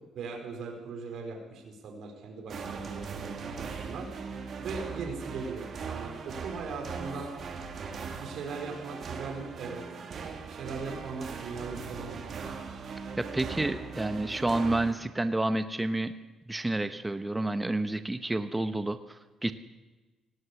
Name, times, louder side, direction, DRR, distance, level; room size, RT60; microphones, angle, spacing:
voice 1, 0.1-4.1 4.6-7.3 8.2-9.8 10.5-12.6, right 4 dB, 75° right, 2 dB, 4.5 m, -39 dB
sound 1, 2.5-14.9, right 5 dB, 55° right, 3.3 m, -39 dB
voice 2, 13.2-16.1 16.5-19.5, right 2 dB, 15° right, 10 dB, 1.2 m, -29 dB
18.5 x 17.5 x 8.3 m, 1.2 s
cardioid pair, 90°, 0 cm